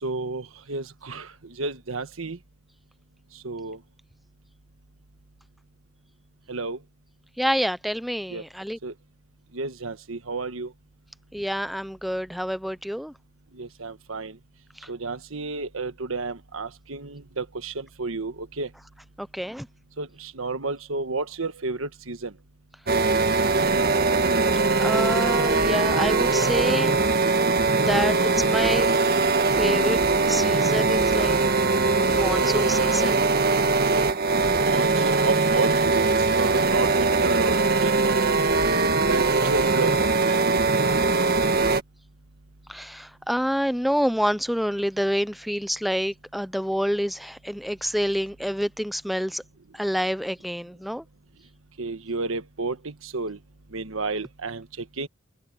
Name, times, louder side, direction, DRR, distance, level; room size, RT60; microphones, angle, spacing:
voice 1, 0.0-2.4 3.3-3.8 6.5-6.8 8.3-8.4 8.8-8.9 9.5-10.7 13.5-14.4 14.9-18.7 20.0-22.3 33.8-34.0 34.6-38.5 39.1-40.4 51.8-53.4 53.7-55.1, right 3 dB, 90° right, 1.4 m, -31 dB
voice 2, 7.4-8.8 11.3-13.1 19.2-19.7 24.8-26.9 27.8-29.2 29.5-30.0 30.3-31.4 32.1-33.2 34.7-34.8 42.7-49.4 49.7-51.0, equal, ahead, 0.5 m, -27 dB
sound 1, 22.9-41.8, right 3 dB, 50° right, 1.7 m, -21 dB
head